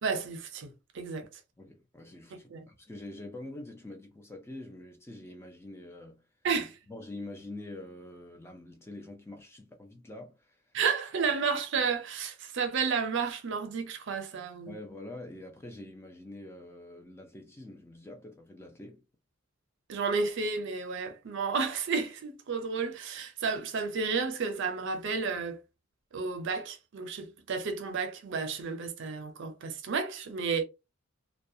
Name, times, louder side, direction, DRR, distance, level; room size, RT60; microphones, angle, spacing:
voice 1, 0.0-1.3 2.5-2.7 6.4-6.8 10.7-14.8 19.9-25.6 26.1-30.6, right 5 dB, 60° right, 0.5 m, -32 dB
voice 2, 1.6-6.2 6.9-10.7 11.2-11.3 14.6-19.0, left 2 dB, 10° left, 0.4 m, -45 dB
2.3 x 2.1 x 2.6 m
head